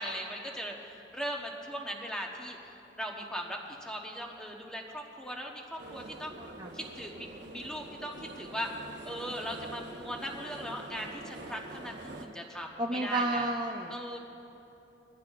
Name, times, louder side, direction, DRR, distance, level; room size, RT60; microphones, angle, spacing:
voice 1, 0.0-2.6 3.0-6.4 6.7-8.7 9.1-13.5 13.9-14.2, equal, 5° left, 0 dB, 1.0 m, -39 dB
sound 1, 5.8-12.3, right 2 dB, 70° right, 1.2 m, -46 dB
voice 2, 6.4-6.7 12.8-13.9, right 2 dB, 25° right, 0 dB, 0.5 m, -31 dB
21.0 x 14.0 x 2.5 m, 3.0 s
head